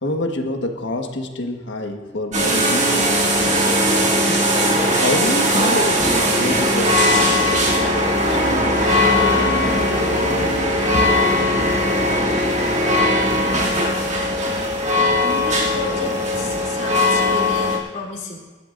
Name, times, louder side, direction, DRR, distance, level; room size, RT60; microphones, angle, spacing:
voice 1, 0.0-3.1 4.9-10.6 10.9-11.1 13.3-13.7, left 1 dB, 80° left, 4 dB, 1.5 m, -28 dB
sound 1, 2.3-17.8, left 1 dB, 40° right, 2.7 m, -19 dB
sound 2, 6.4-15.2, equal, 65° left, 1.3 m, -31 dB
voice 2, 15.2-18.4, left 2 dB, 45° left, -4 dB, 3.8 m, -32 dB
25.5 x 12.0 x 2.6 m, 1.4 s
head